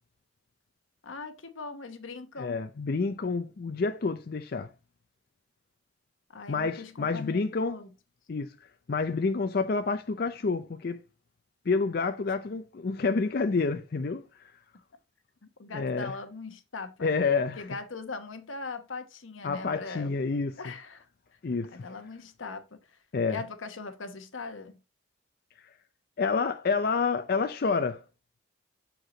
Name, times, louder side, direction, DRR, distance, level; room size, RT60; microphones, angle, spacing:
voice 1, 1.0-2.6 6.3-7.9 15.4-17.1 17.6-20.1 20.6-21.1 21.7-23.0 23.3-24.8, left 4 dB, 90° left, 1.0 m, -40 dB
voice 2, 2.4-4.7 6.5-7.8 8.3-8.6 8.9-11.0 11.7-14.4 15.7-16.1 17.0-17.6 19.4-20.6 21.4-21.9 23.1-23.4 26.2-28.0, left 4 dB, 50° left, 0.4 m, -28 dB
6.5 x 4.6 x 3.8 m
head